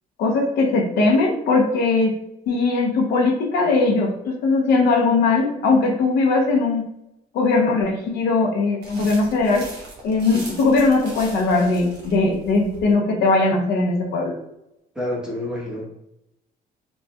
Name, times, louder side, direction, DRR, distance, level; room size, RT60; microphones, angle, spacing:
voice 1, 0.2-2.2 2.5-6.9 7.3-9.7 10.0-14.3, left 3 dB, 75° left, 0 dB, 0.7 m, -19 dB
sound 1, 8.8-12.9, right 2 dB, 75° right, 1.2 m, -40 dB
voice 2, 14.9-15.9, left 1 dB, 5° right, -4 dB, 1.0 m, -28 dB
4.0 x 2.3 x 2.3 m, 0.85 s
cardioid pair, 110°, 17 cm